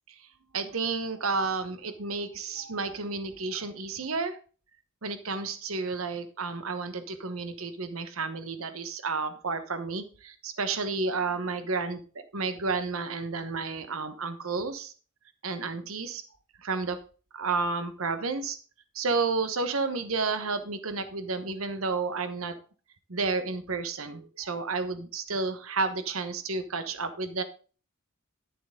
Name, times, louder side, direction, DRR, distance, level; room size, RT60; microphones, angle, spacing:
voice 1, 0.5-4.4 5.0-12.0 12.3-14.9 15.4-16.2 16.6-17.0 17.3-18.6 18.9-22.6 23.1-27.4, right 4 dB, 80° right, 10 dB, 1.1 m, -31 dB
11.5 x 7.0 x 3.8 m, 0.37 s
head